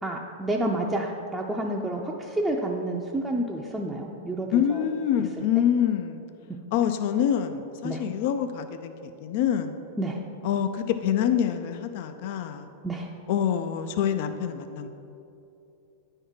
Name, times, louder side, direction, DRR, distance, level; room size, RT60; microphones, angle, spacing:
voice 1, 0.0-4.8 7.8-8.0 10.0-10.2 12.8-13.1, right 1 dB, 10° right, -2 dB, 0.5 m, -29 dB
voice 2, 4.5-6.2 6.7-9.8 10.4-12.7 13.3-14.9, left 9 dB, 60° left, 9 dB, 0.4 m, -26 dB
9.2 x 3.6 x 5.5 m, 2.8 s
hypercardioid pair, 120°, 0 cm